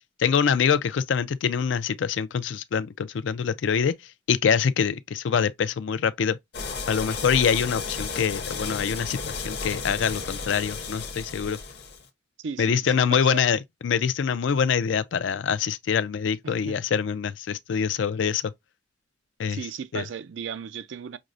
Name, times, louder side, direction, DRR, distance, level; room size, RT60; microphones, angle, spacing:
voice 1, 0.2-3.9 4.3-6.4 6.9-11.6 12.6-18.5 19.4-19.6 19.9-20.0, left 7 dB, 70° left, 0.4 m, -25 dB
sound 1, 6.5-12.0, left 4 dB, 55° left, 0.8 m, -33 dB
voice 2, 12.4-13.4 16.4-16.8 19.5-21.2, right 6 dB, 70° right, 0.4 m, -36 dB
6.0 x 2.0 x 2.5 m
head